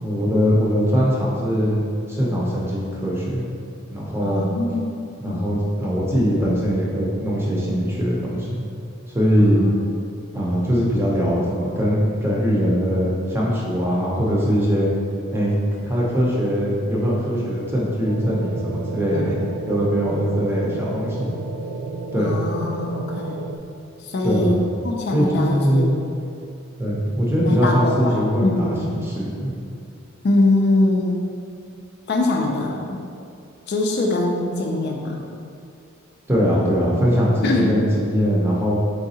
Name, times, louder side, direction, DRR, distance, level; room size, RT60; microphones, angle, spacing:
voice 1, 0.0-1.8 2.1-3.4 3.9-4.4 5.2-8.5 9.1-9.6 10.3-14.9 15.3-19.4 19.7-21.3 22.1-22.4 24.2-24.7 25.1-26.1 26.8-28.5 28.9-29.6 36.3-38.7, equal, 10° right, -5 dB, 0.6 m, -21 dB
voice 2, 4.2-4.9 5.3-5.5 9.4-9.8 19.1-19.3 22.2-23.4 24.0-26.1 27.5-28.9 30.2-31.3 32.1-33.0 33.7-35.2 37.4-37.7, left 2 dB, 50° left, 0 dB, 0.3 m, -23 dB
sound 1, 18.1-23.6, right 3 dB, 85° right, 0.3 m, -32 dB
3.9 x 3.5 x 2.8 m, 2.5 s
head